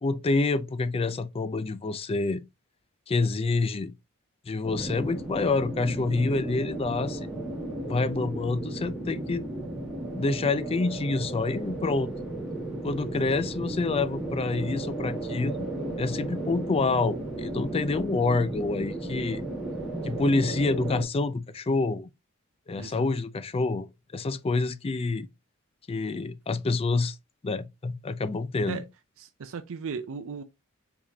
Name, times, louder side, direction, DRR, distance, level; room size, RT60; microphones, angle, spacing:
voice 1, 0.0-2.4 3.1-3.9 4.5-7.3 7.9-9.4 10.1-12.1 12.8-15.7 16.0-19.4 20.0-22.1 22.7-23.9 24.1-25.3 25.9-27.2 27.4-28.8, left 3 dB, 25° left, 0.4 m, -27 dB
sound 1, 4.6-21.0, right 2 dB, 5° right, 1.5 m, -34 dB
voice 2, 22.8-23.1 28.7-28.8 29.2-30.4, right 5 dB, 65° right, 0.5 m, -37 dB
4.8 x 3.6 x 2.7 m
head